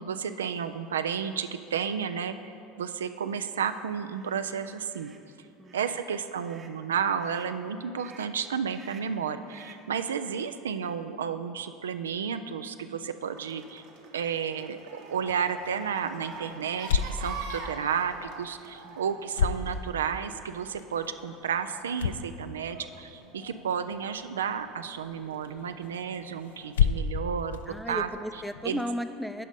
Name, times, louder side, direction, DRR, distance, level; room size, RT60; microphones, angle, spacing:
voice 1, 0.0-5.1 5.7-13.8 14.1-14.8 15.1-27.6 27.9-28.1 28.6-28.8, right 7 dB, 85° right, 10 dB, 0.3 m, -32 dB
sound 1, 4.1-4.4 4.9-5.2 5.6-6.0 6.4-6.8 7.2-7.5 8.0-8.4 8.7-9.2 9.5-9.9, right 5 dB, 35° right, 0.8 m, -53 dB
sound 2, 13.4-26.7, right 4 dB, 65° right, 1.1 m, -46 dB
sound 3, 15.1-28.7, left 6 dB, 80° left, 0.4 m, -34 dB
voice 2, 27.7-29.5, equal, ahead, 9 dB, 0.4 m, -34 dB
9.2 x 5.1 x 5.3 m, 2.7 s
hypercardioid pair, 80°, 0 cm